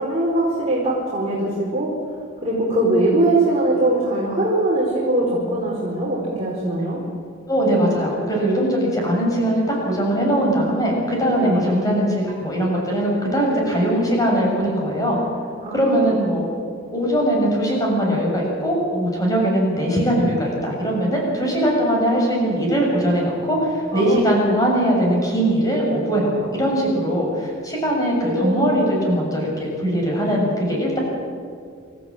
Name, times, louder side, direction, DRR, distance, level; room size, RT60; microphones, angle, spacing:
voice 1, 0.0-1.9 2.4-7.0 11.4-11.9 15.6-16.3 23.9-24.3 28.3-28.8, right 1 dB, 30° right, -5 dB, 4.7 m, -21 dB
voice 2, 7.5-15.2 15.7-16.5 16.9-31.0, equal, 15° left, -2 dB, 7.2 m, -20 dB
27.5 x 14.5 x 8.7 m, 2.2 s
head